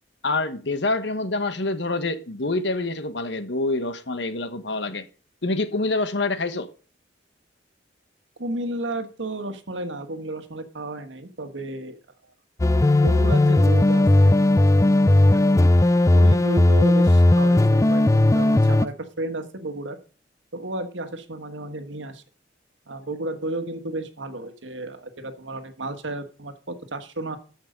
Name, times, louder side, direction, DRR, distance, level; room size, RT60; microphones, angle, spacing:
voice 1, 0.2-5.1 5.4-6.7, left 2 dB, 70° left, 1.2 m, -26 dB
voice 2, 8.4-12.0 12.7-15.0 15.3-15.5 16.1-20.0 20.5-22.2 22.9-27.4, right 1 dB, 85° right, 1.5 m, -33 dB
sound 1, 12.6-18.9, left 1 dB, 15° left, 0.4 m, -17 dB
13.5 x 5.8 x 5.2 m
head